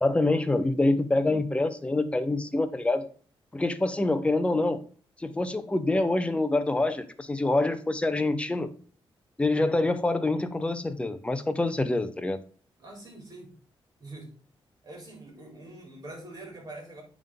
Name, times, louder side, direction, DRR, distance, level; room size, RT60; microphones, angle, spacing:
voice 1, 0.0-3.1 3.5-4.8 5.2-8.7 9.4-12.4, left 2 dB, 10° left, 9 dB, 0.7 m, -26 dB
voice 2, 12.8-13.5 14.0-14.3 14.8-17.0, right 2 dB, 40° right, 0 dB, 3.5 m, -44 dB
9.0 x 3.7 x 3.7 m, 0.43 s
wide cardioid pair, 130°, 10 cm